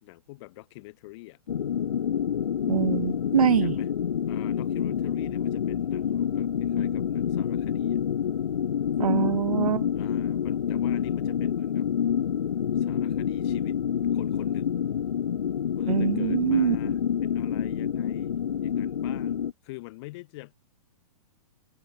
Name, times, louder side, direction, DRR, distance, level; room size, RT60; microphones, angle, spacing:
voice 1, 0.0-1.4 3.5-3.9 4.3-8.0 9.9-11.9 12.8-13.8 14.1-14.8 15.8-18.3 18.6-20.5, left 21 dB, 45° left, 6.2 m, -45 dB
sound 1, 1.5-19.5, left 9 dB, 70° left, 3.4 m, -27 dB
voice 2, 2.7-3.7 9.0-9.8 15.9-16.8, right 9 dB, 70° right, 1.6 m, -24 dB
hypercardioid pair, 120°, 19 cm